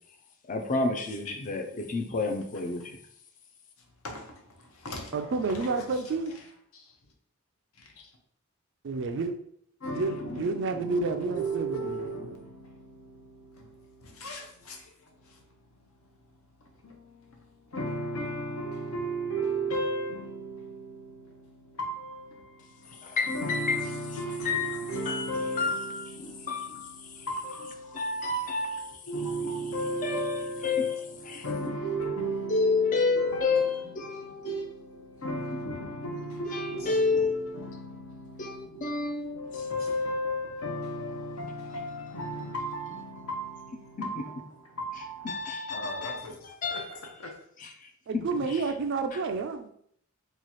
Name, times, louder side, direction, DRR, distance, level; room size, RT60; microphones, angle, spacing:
voice 1, 0.5-3.0 23.0-23.8 24.4-25.3 25.6-26.1 26.5-26.9 27.9-28.9 30.0-31.4 32.5-34.6 36.2-37.5 38.4-39.4 45.2-46.2 46.6-46.8 47.6-48.6 49.1-49.2, left 4 dB, 35° left, 0.4 m, -30 dB
voice 2, 4.0-6.1 6.7-6.9 7.8-8.1 9.8-15.6 16.6-47.4, right 1 dB, 65° left, 0.8 m, -36 dB
voice 3, 5.1-6.3 8.8-9.3 9.9-12.1 48.1-49.7, right 4 dB, 55° right, 0.4 m, -30 dB
3.0 x 2.3 x 4.1 m
head